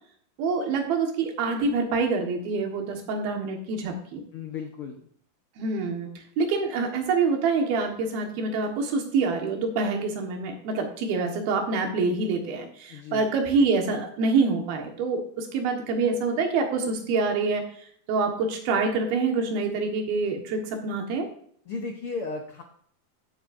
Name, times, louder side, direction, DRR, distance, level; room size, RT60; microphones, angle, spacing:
voice 1, 0.4-4.2 5.6-21.3, right 4 dB, 85° right, 3 dB, 3.4 m, -26 dB
voice 2, 4.3-5.0 12.9-13.2 21.7-22.6, left 4 dB, 85° left, 3 dB, 1.2 m, -34 dB
14.0 x 7.7 x 2.6 m, 0.62 s
omnidirectional pair, 4.2 m